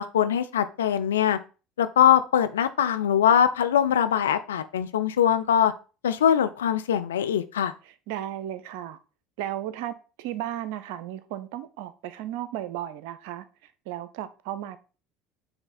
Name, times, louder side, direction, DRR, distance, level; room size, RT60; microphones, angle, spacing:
voice 1, 0.0-1.4 1.8-5.7 6.0-7.7, left 9 dB, 80° left, 0.4 m, -22 dB
voice 2, 7.9-9.0 9.4-13.4 13.9-14.8, right 12 dB, 70° right, 0.6 m, -34 dB
7.0 x 3.3 x 4.1 m
hypercardioid pair, 70°, 0 cm